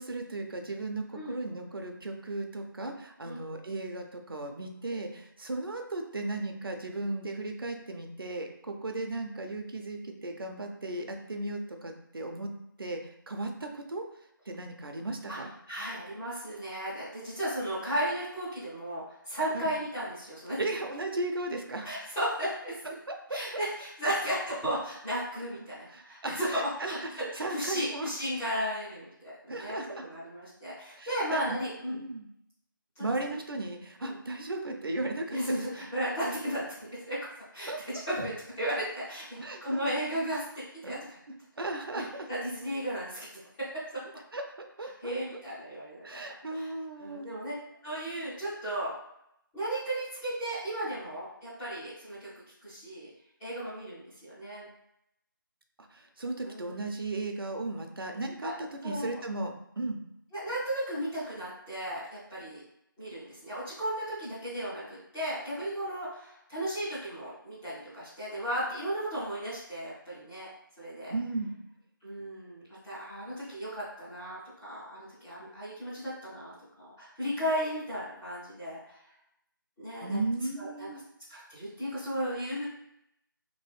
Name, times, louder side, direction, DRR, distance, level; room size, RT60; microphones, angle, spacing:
voice 1, 0.0-12.5 12.8-14.0 14.5-15.5 19.5-19.7 20.6-21.9 23.1-23.2 24.2-24.3 25.9-28.1 29.5-30.1 31.0-31.6 31.9-32.3 33.0-35.9 37.7-38.0 39.4-39.9 40.8-41.0 41.6-42.3 44.3-44.4 44.8-45.4 46.0-47.3 55.8-60.0 71.1-71.5 80.0-81.0, right 2 dB, 80° right, 4 dB, 0.6 m, -36 dB
voice 2, 15.7-20.6 21.8-22.8 23.3-32.0 33.0-33.1 34.0-34.2 35.3-36.7 36.9-37.3 37.5-41.2 42.3-43.3 43.6-44.0 45.0-46.2 46.5-47.5 47.8-48.9 49.5-52.3 52.6-53.1 53.4-54.7 56.4-56.9 58.4-58.5 58.8-59.2 60.3-62.6 63.0-70.5 70.8-71.1 72.0-79.0 79.8-80.2 80.6-80.9 81.3-82.6, equal, 5° left, -13 dB, 0.3 m, -35 dB
3.0 x 2.7 x 3.2 m, 0.77 s
figure-of-eight pair, 165°, 12 cm